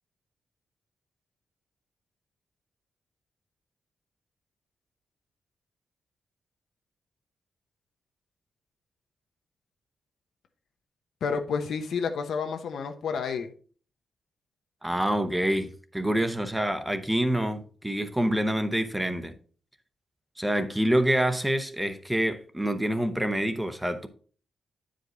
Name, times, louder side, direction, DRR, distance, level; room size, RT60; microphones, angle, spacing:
voice 1, 11.2-13.5, left 5 dB, 75° left, 0.9 m, -30 dB
voice 2, 14.8-19.3 20.4-24.1, right 1 dB, 5° right, 0.7 m, -27 dB
9.4 x 5.1 x 3.8 m
wide cardioid pair, 145°, 0 cm